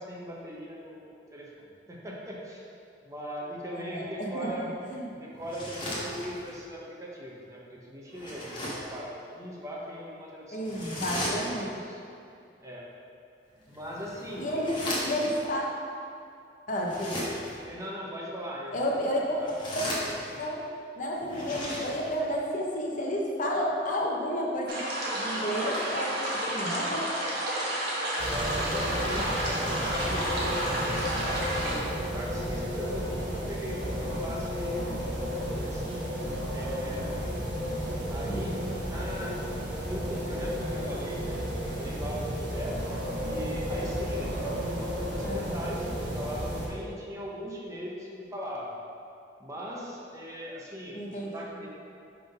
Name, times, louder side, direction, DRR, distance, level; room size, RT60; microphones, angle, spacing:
voice 1, 0.0-1.5 1.9-2.7 3.0-4.7 5.2-12.0 12.6-12.9 13.7-14.5 17.6-19.0 19.4-19.5 28.2-34.8 35.3-35.9 36.5-37.2 38.1-39.4 39.8-42.8 43.2-48.7 49.4-51.7, equal, 20° right, -4 dB, 0.8 m, -39 dB
voice 2, 3.7-5.1 10.5-11.7 14.4-15.6 16.7-17.2 18.7-19.4 19.7-19.8 20.4-20.6 21.0-24.8 25.1-27.1 38.2-38.8 45.2-45.6 50.9-51.3, equal, 45° left, -2 dB, 0.8 m, -31 dB
sound 1, 5.4-6.6 8.1-9.0 10.6-11.8 13.6-15.4 16.8-17.6 19.3-20.5 21.2-22.3, left 1 dB, 25° left, 1.3 m, -36 dB
sound 2, 24.7-31.8, right 1 dB, 60° right, 1.2 m, -31 dB
sound 3, 28.2-46.7, equal, 80° right, 1.4 m, -33 dB
5.8 x 3.6 x 5.2 m, 2.5 s
head